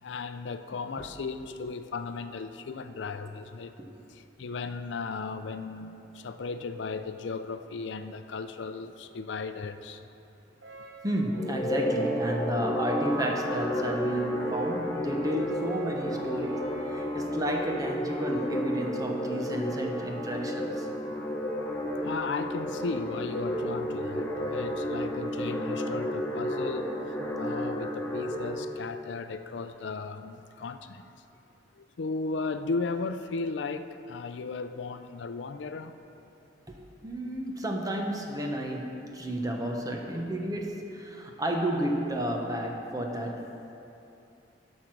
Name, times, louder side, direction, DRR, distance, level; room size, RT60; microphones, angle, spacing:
voice 1, 0.0-3.7 4.1-10.0 22.0-27.0 27.4-31.1 31.7-35.9, left 4 dB, 75° left, 10 dB, 0.5 m, -36 dB
Brass instrument, 10.6-19.2, equal, 85° right, 0.9 m, -47 dB
voice 2, 11.0-20.9 36.7-43.7, right 1 dB, 20° right, 1 dB, 1.0 m, -32 dB
sound 1, 11.3-28.5, equal, 10° left, 1.3 m, -32 dB
11.0 x 6.5 x 6.0 m, 2.8 s
head